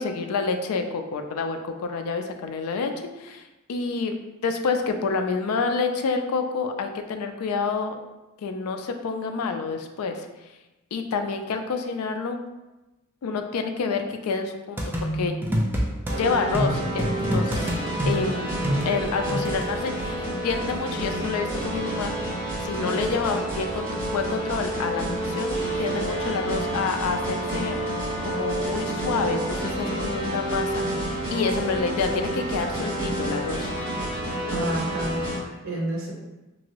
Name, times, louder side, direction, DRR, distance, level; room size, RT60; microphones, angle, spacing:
voice 1, 0.0-2.9 3.2-3.4 3.7-4.1 4.4-8.0 8.4-10.3 10.9-12.4 13.2-15.3 16.2-17.7 18.0-18.5 18.9-22.3 22.6-27.8 28.2-33.7, left 4 dB, 85° left, 6 dB, 0.4 m, -28 dB
sound 1, 14.8-16.2 16.5-19.7, equal, 10° right, 0.4 m, -26 dB
sound 2, 16.1-35.4, right 1 dB, 25° left, 1.5 m, -29 dB
voice 2, 34.5-36.1, right 2 dB, 65° right, -2 dB, 0.8 m, -30 dB
2.9 x 2.6 x 2.8 m, 1.0 s
head